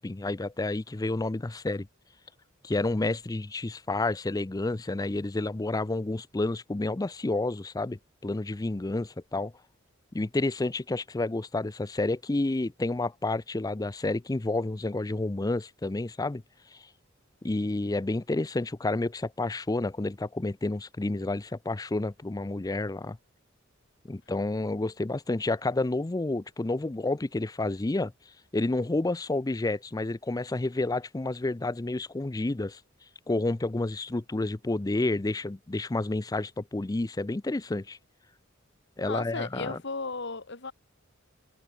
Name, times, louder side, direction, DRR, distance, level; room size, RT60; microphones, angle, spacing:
voice 1, 0.0-1.9 2.6-9.5 10.1-16.4 16.7-16.8 17.4-23.2 24.0-28.1 28.5-32.8 33.3-38.0 39.0-39.8, left 2 dB, 20° left, 0.5 m, -30 dB
voice 2, 39.0-40.7, left 3 dB, 60° left, 2.2 m, -35 dB
head